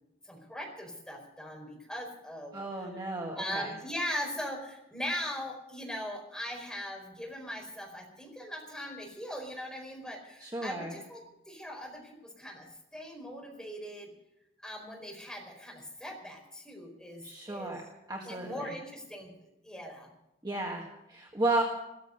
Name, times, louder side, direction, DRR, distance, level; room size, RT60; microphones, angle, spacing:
voice 1, 0.2-2.9 3.3-14.1 14.6-17.8 18.2-19.3 19.6-20.1, equal, 5° left, -1 dB, 4.6 m, -40 dB
voice 2, 2.5-3.7 10.4-10.9 17.2-17.8 18.1-18.7 20.4-21.6, right 2 dB, 20° right, -1 dB, 1.7 m, -33 dB
15.0 x 14.5 x 6.7 m, 0.89 s
head